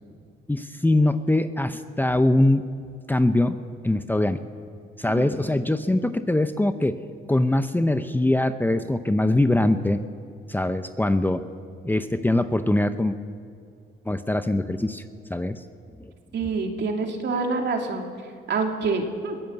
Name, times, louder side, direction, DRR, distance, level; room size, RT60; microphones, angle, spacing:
voice 1, 0.5-2.7 3.1-3.6 3.8-4.4 5.0-7.0 7.3-10.0 10.5-11.4 11.8-13.2 14.0-15.0 15.3-15.6 16.0-16.1, left 1 dB, 10° left, 10 dB, 0.8 m, -22 dB
voice 2, 16.3-18.1 18.5-19.4, right 4 dB, 60° right, 3 dB, 2.9 m, -26 dB
22.5 x 14.5 x 8.1 m, 2.3 s
cardioid pair, 90°, 20 cm